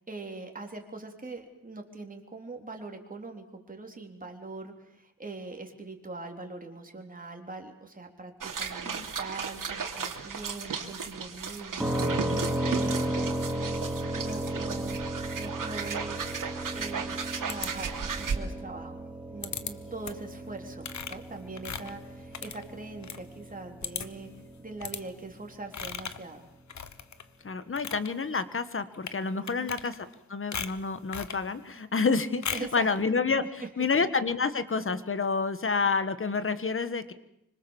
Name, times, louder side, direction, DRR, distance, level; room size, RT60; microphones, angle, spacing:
voice 1, 0.0-13.6 14.2-16.5 16.7-19.0 19.3-24.3 24.6-26.4 29.4-29.8 32.5-32.9 33.6-33.9, right 3 dB, 25° right, 3 dB, 3.7 m, -42 dB
sound 1, 8.4-18.4, right 6 dB, 90° right, 2.9 m, -35 dB
sound 2, 11.8-25.5, right 1 dB, 5° right, 2.7 m, -35 dB
sound 3, 17.5-18.2 19.4-19.7 20.0-20.3 20.8-23.2 23.5-23.6 23.8-24.3 24.8-25.0 25.7-26.3 26.7-27.3 27.6-28.1 28.9-29.2 29.5-30.2 30.5-31.4 32.4-32.8, left 6 dB, 60° left, 1.3 m, -37 dB
voice 2, 27.4-30.0 30.3-37.1, left 4 dB, 40° left, 12 dB, 1.6 m, -29 dB
26.0 x 25.0 x 7.3 m, 0.80 s
wide cardioid pair, 145°, 32 cm